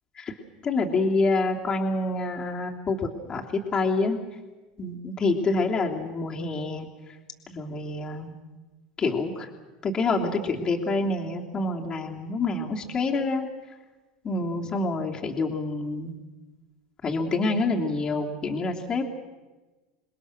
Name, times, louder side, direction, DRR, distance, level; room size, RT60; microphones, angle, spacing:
voice 1, 0.6-3.0 3.3-3.4 3.7-4.2 4.8-6.9 7.5-8.3 9.0-9.5 9.8-13.5 14.2-16.2 17.0-19.1, left 3 dB, 30° left, 0 dB, 3.1 m, -27 dB
27.5 x 21.0 x 6.6 m, 1.2 s
hypercardioid pair, 85°, 2 cm